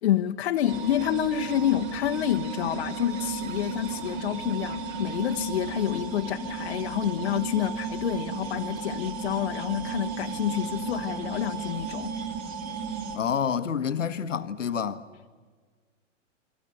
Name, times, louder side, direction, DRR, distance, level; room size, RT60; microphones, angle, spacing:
voice 1, 0.0-12.2, left 11 dB, 55° left, 1.1 m, -28 dB
sound 1, 0.7-13.2, right 4 dB, 40° right, 4.2 m, -34 dB
voice 2, 13.1-15.0, left 7 dB, 75° left, 1.3 m, -28 dB
29.5 x 24.5 x 6.8 m
figure-of-eight pair, 105°, 38 cm